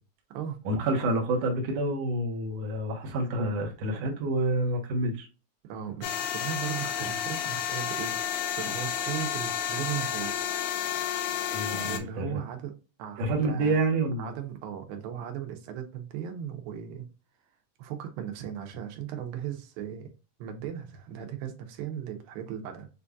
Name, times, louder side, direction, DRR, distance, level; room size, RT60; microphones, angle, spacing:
voice 1, 0.7-5.3 11.5-12.3 13.2-14.3, right 2 dB, 65° right, 1.8 m, -28 dB
voice 2, 5.7-8.2 8.6-10.5 11.8-13.8 14.2-17.1 17.8-20.1 20.4-22.9, right 9 dB, 85° right, 2.6 m, -37 dB
sound 1, 6.0-12.0, left 9 dB, 85° left, 2.3 m, -31 dB
6.7 x 2.6 x 2.3 m
omnidirectional pair, 4.1 m